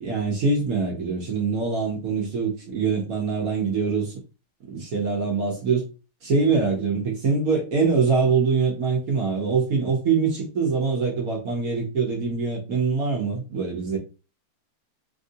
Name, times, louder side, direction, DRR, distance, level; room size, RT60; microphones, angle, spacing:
voice 1, 0.0-4.1 4.7-5.8 6.2-14.0, right 4 dB, 60° right, 1.0 m, -24 dB
3.4 x 2.6 x 2.6 m
omnidirectional pair, 2.3 m